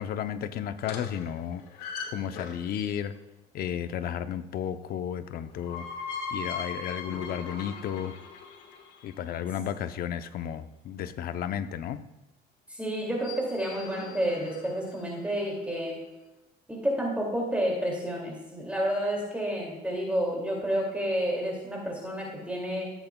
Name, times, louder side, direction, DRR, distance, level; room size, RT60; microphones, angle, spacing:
voice 1, 0.0-1.6 2.1-3.1 3.5-5.9 6.3-8.1 9.0-12.0, left 9 dB, 65° left, 11 dB, 0.6 m, -33 dB
sound 1, 0.8-3.1 5.3-9.4 13.0-15.2, left 5 dB, 90° left, 1.4 m, -40 dB
voice 2, 12.7-16.0 16.7-22.9, equal, 10° right, -2 dB, 2.4 m, -30 dB
14.0 x 8.0 x 2.3 m, 1.0 s
cardioid pair, 110°, 17 cm